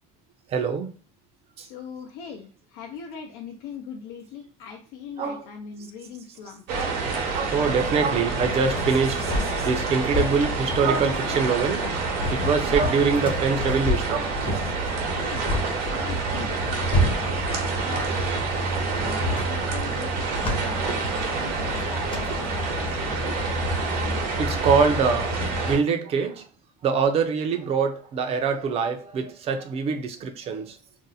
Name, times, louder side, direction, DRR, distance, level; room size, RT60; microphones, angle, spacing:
voice 1, 0.5-0.9 1.6-1.7 5.2-5.4 6.7-7.0 7.3-11.8 12.3-14.3 18.8-19.0 23.1-23.3 23.8-24.1 24.4-26.5 26.8-30.8, right 5 dB, 40° right, 0.5 m, -24 dB
voice 2, 1.6-6.6 15.2-18.2 18.9-23.6, left 6 dB, 85° left, 0.6 m, -41 dB
sound 1, 6.7-25.8, right 3 dB, 75° right, 0.9 m, -27 dB
sound 2, 8.0-25.5, left 1 dB, 30° left, 0.7 m, -31 dB
2.6 x 2.0 x 3.9 m
cardioid pair, 160°, 16 cm